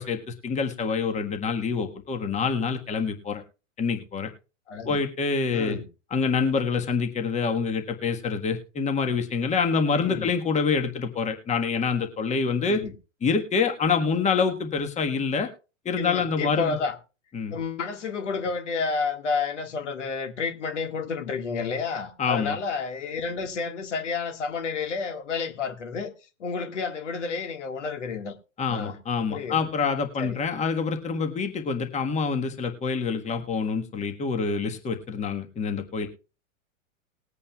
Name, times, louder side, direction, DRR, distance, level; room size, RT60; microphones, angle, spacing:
voice 1, 0.0-3.4 3.8-4.3 4.8-5.8 6.1-12.8 13.2-15.5 15.8-16.8 17.3-17.6 22.2-22.6 28.6-36.1, left 5 dB, 20° left, 1.5 m, -26 dB
voice 2, 4.7-5.0 5.5-5.9 9.9-10.3 12.7-12.9 16.0-16.9 17.5-26.1 26.4-28.3 28.7-29.0 29.3-29.7 30.2-30.4, left 5 dB, 65° left, 2.0 m, -30 dB
20.5 x 8.5 x 2.4 m
figure-of-eight pair, 100°, 38 cm